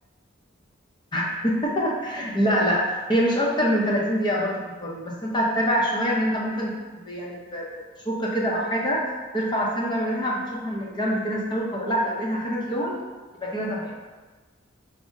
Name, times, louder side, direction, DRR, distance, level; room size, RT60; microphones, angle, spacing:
voice 1, 1.1-6.7 7.0-9.0 9.3-13.0 13.4-13.9, equal, 25° left, -3 dB, 0.7 m, -25 dB
5.1 x 2.1 x 3.6 m, 1.3 s
head